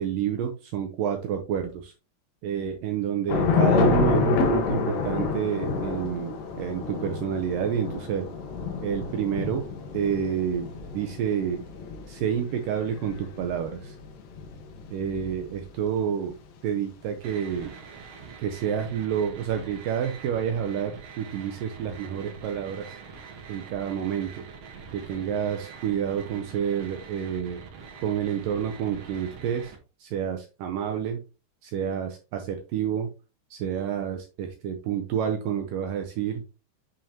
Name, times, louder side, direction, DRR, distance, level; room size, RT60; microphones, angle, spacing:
voice 1, 0.0-1.9 2.4-8.3 8.8-9.6 9.9-11.6 12.1-14.0 14.9-16.3 16.6-17.7 18.4-22.9 23.5-24.4 24.9-27.6 28.0-29.7 30.0-31.2 31.6-33.1 33.5-36.4, right 8 dB, 75° right, 5 dB, 2.1 m, -29 dB
Thunder / Rain, 3.3-15.8, left 5 dB, 70° left, 2.7 m, -28 dB
sound 1, 17.2-29.8, right 5 dB, 60° right, 1.8 m, -44 dB
7.2 x 5.3 x 2.8 m, 0.32 s
omnidirectional pair, 4.5 m